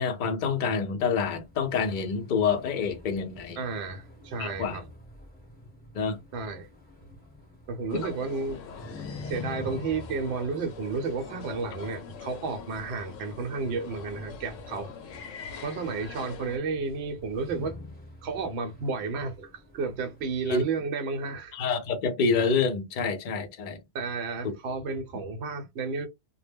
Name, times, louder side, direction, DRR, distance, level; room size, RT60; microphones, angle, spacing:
voice 1, 0.0-3.6 4.4-4.8 5.9-6.2 20.5-20.6 21.5-23.8 24.4-24.5, left 5 dB, 50° left, 0.6 m, -27 dB
sound 1, 1.1-20.8, left 2 dB, 10° left, 0.7 m, -47 dB
voice 2, 3.6-4.8 6.3-6.7 7.7-8.6 9.3-14.9 15.6-17.8 18.2-21.6 23.9-26.1, right 4 dB, 65° right, 0.8 m, -32 dB
sound 2, 7.9-16.6, left 6 dB, 85° left, 1.0 m, -43 dB
2.2 x 2.0 x 3.3 m
omnidirectional pair, 1.3 m